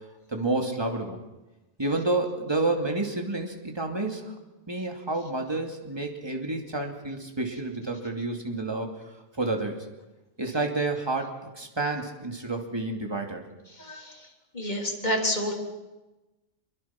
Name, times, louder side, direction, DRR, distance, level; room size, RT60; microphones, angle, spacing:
voice 1, 0.3-1.2 1.8-4.3 4.7-8.9 9.3-9.8 10.4-13.4, right 2 dB, 20° right, 3 dB, 2.6 m, -29 dB
voice 2, 13.8-14.2 14.5-15.6, equal, 35° left, 0 dB, 3.8 m, -28 dB
26.0 x 23.0 x 6.0 m, 1.1 s
omnidirectional pair, 1.2 m